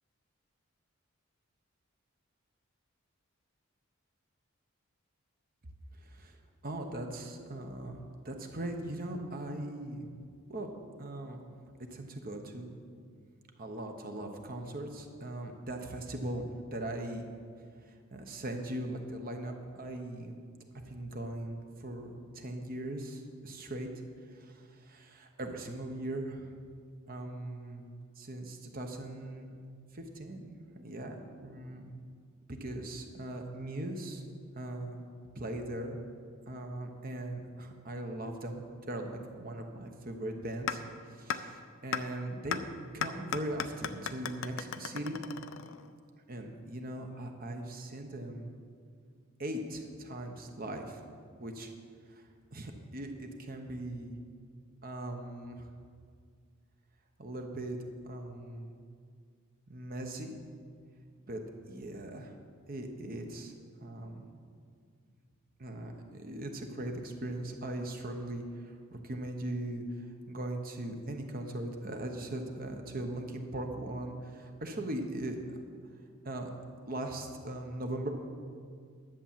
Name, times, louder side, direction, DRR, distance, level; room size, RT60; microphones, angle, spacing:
voice 1, 6.0-10.1 10.5-10.7 11.0-11.4 11.9-12.8 13.6-17.3 17.8-20.4 20.7-23.9 24.3-26.5 27.1-27.9 28.2-29.6 29.9-30.5 30.7-31.9 32.5-34.2 34.5-35.0 35.3-36.0 36.5-42.6 42.9-45.2 46.3-48.5 49.4-51.0 51.4-51.7 52.1-54.1 54.8-55.7 57.2-57.8 58.0-58.7 59.7-60.4 61.3-61.4 61.7-62.3 62.7-63.5 63.8-64.3 65.6-75.6 76.2-76.5 76.9-78.1, right 1 dB, 45° right, 4 dB, 1.0 m, -39 dB
sound 1, 40.7-40.8 41.3-41.4 41.9-42.0 42.5-42.6 43.0-45.9, left 7 dB, 70° left, 0.5 m, -34 dB
11.0 x 7.2 x 7.5 m, 2.1 s
head